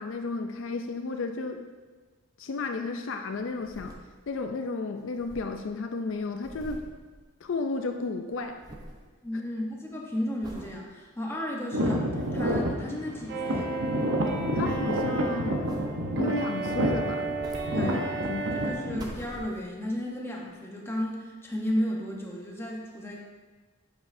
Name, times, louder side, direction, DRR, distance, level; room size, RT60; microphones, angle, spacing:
voice 1, 0.0-1.6 2.4-3.9 4.3-6.8 7.4-8.6 14.5-15.6 16.2-17.3 17.7-17.9 18.3-18.6, left 3 dB, 65° left, 6 dB, 0.4 m, -32 dB
sound 1, 3.4-4.5 4.8-4.9 5.0-7.8 8.1-9.1 9.5-9.9 10.4-10.8 11.3-11.4 11.9-12.8 13.8-15.3 15.6-16.2 17.1-18.3 18.7-19.9 20.5-20.6, right 1 dB, 20° right, 0.6 m, -46 dB
voice 2, 9.2-13.7 17.7-18.1 18.6-23.2, equal, 10° left, -2 dB, 0.9 m, -33 dB
sound 2, 11.7-19.1, equal, 90° right, 0.9 m, -29 dB
sound 3, 13.3-18.7, right 3 dB, 55° right, 0.9 m, -33 dB
8.5 x 6.1 x 2.6 m, 1.3 s
head